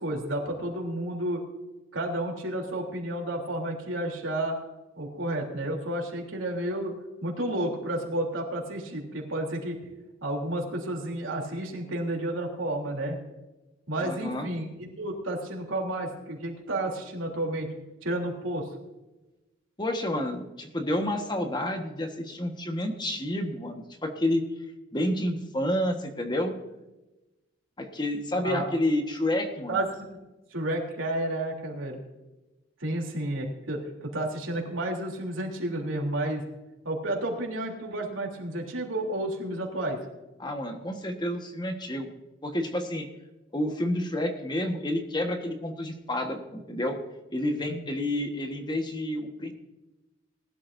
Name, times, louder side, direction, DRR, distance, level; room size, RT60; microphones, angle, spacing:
voice 1, 0.0-1.5 1.9-4.6 5.0-6.9 7.2-9.8 10.2-13.2 13.9-17.7 18.0-18.7 28.4-28.7 29.7-30.0 30.5-32.0 32.8-36.4 36.8-40.0 47.7-47.8, right 1 dB, 85° right, 0 dB, 3.4 m, -31 dB
voice 2, 14.0-14.5 19.8-24.4 24.9-26.5 27.8-29.8 40.4-42.1 42.4-43.1 43.5-47.0 47.3-49.5, left 1 dB, 20° left, 4 dB, 1.4 m, -29 dB
20.0 x 12.0 x 2.7 m, 1.0 s
head